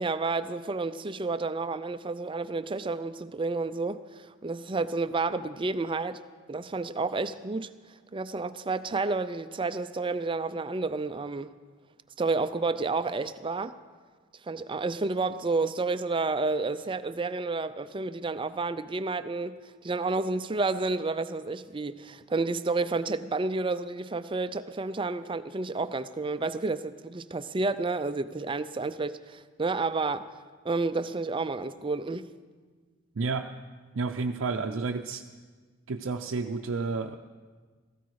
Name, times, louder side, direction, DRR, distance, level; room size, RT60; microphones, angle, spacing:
voice 1, 0.0-6.2 6.5-7.7 8.1-11.5 12.2-13.8 14.5-30.3 30.6-32.3, right 3 dB, 25° right, 12 dB, 0.5 m, -30 dB
voice 2, 33.2-33.5 33.9-35.2 35.9-37.2, right 4 dB, 90° right, 2 dB, 0.6 m, -30 dB
17.0 x 15.0 x 4.8 m, 1.5 s
head